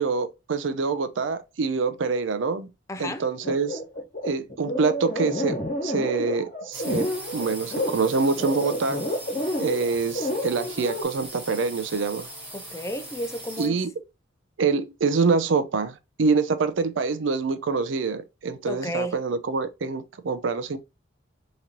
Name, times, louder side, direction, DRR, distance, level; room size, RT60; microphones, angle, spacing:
voice 1, 0.0-2.7 3.0-3.8 4.3-7.1 7.3-9.0 9.6-12.3 13.6-13.9 14.6-20.8, right 4 dB, 70° right, 0.5 m, -25 dB
voice 2, 2.9-3.2 12.5-13.8 18.7-19.2, equal, 15° left, 0.3 m, -32 dB
sound 1, 3.4-11.0, left 1 dB, 45° left, 1.2 m, -29 dB
sound 2, 6.7-13.7, right 1 dB, 10° right, 1.1 m, -40 dB
3.8 x 3.0 x 2.8 m
head